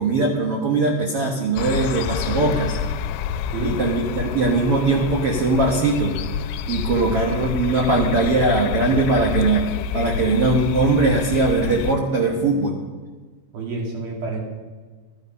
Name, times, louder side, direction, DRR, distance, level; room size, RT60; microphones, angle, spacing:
voice 1, 0.0-2.8 3.6-6.1 6.7-12.8, right 3 dB, 85° right, -1 dB, 1.2 m, -20 dB
sound 1, 1.6-11.9, left 8 dB, 90° left, 2.8 m, -28 dB
voice 2, 3.5-3.8 13.5-14.4, right 2 dB, 60° right, -1 dB, 4.2 m, -28 dB
13.5 x 12.0 x 5.4 m, 1.4 s
omnidirectional pair, 4.9 m